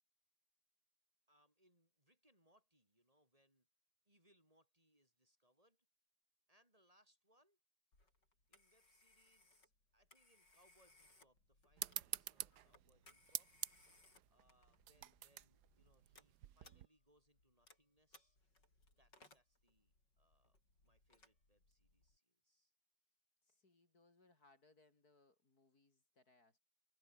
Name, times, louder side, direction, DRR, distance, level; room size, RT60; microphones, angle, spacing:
voice 1, 1.3-3.7 4.1-5.9 6.5-7.6 8.5-13.5 14.3-18.4 18.9-22.7, equal, 20° right, 7.6 m, -77 dB
Telephone, 7.9-22.2, left 2 dB, 85° left, 8.1 m, -70 dB
sound 1, 11.8-16.9, right 12 dB, 70° right, 1.4 m, -48 dB
voice 2, 23.4-26.6, left 2 dB, 60° left, 4.6 m, -72 dB
omnidirectional pair, 1.8 m